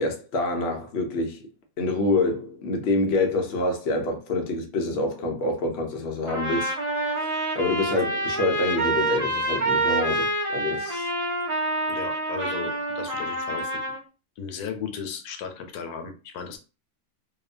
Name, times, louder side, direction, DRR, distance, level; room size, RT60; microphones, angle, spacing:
voice 1, 0.0-1.5 1.8-6.7 7.5-11.1, left 2 dB, 55° left, 0.7 m, -26 dB
Trumpet, 6.3-14.0, right 2 dB, 35° right, 0.5 m, -27 dB
voice 2, 11.9-13.7 14.4-16.6, left 6 dB, 85° left, 1.1 m, -35 dB
2.7 x 2.1 x 2.4 m
omnidirectional pair, 1.6 m